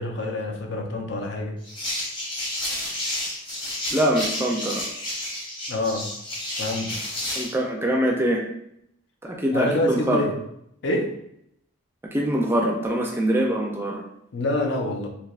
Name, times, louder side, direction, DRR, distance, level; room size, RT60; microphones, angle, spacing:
voice 1, 0.0-1.6 5.7-6.1 6.6-7.0 9.5-10.4 10.8-11.2 14.3-15.1, left 1 dB, 60° left, 2 dB, 0.5 m, -26 dB
sound 1, 1.6-7.5, left 1 dB, 25° left, 0.8 m, -31 dB
voice 2, 3.9-4.8 7.4-8.4 9.2-10.3 12.1-14.0, right 1 dB, 10° right, 0 dB, 0.4 m, -23 dB
3.3 x 2.7 x 2.4 m, 0.76 s
head